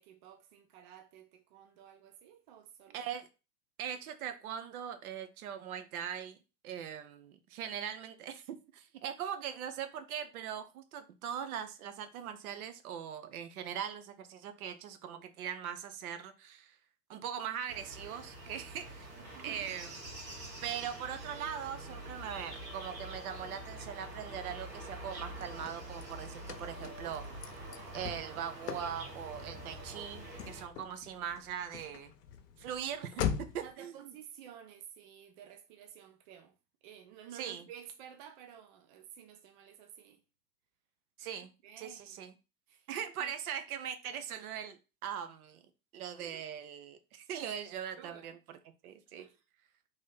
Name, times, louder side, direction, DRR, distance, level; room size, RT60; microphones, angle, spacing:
voice 1, 0.0-3.1 18.5-18.6 19.3-19.7 33.6-36.5 36.8-40.2 41.6-42.2 42.7-42.9 43.2-43.3 46.2-46.4 48.0-48.4 49.2-49.4, right 9 dB, 35° right, 0.4 m, -53 dB
voice 2, 2.9-3.3 3.8-6.4 6.6-16.8 17.1-19.1 19.4-19.9 20.6-27.3 27.9-32.1 32.6-34.1 37.3-37.6 41.2-41.5 41.8-42.3 42.9-45.6 45.9-48.4 48.8-49.2, right 8 dB, 60° right, 0.7 m, -41 dB
sound 1, 17.7-30.6, right 1 dB, 85° right, 1.5 m, -46 dB
Car / Slam, 25.1-33.7, left 8 dB, 70° left, 0.6 m, -42 dB
3.1 x 2.7 x 3.8 m
figure-of-eight pair, 95°, 50 cm